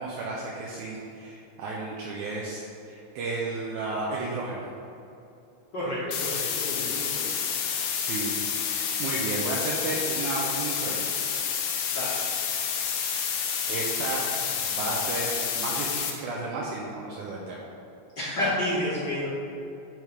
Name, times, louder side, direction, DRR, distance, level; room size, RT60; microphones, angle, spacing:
voice 1, 0.0-4.6 8.0-11.1 13.7-14.2 14.5-17.7, right 3 dB, 75° right, -4 dB, 2.0 m, -33 dB
voice 2, 5.7-7.3 11.9-12.2 18.2-19.4, left 1 dB, 65° left, -8 dB, 1.0 m, -30 dB
sound 1, 6.1-16.1, left 7 dB, 90° left, 2.4 m, -29 dB
9.3 x 3.5 x 5.1 m, 2.8 s
omnidirectional pair, 3.8 m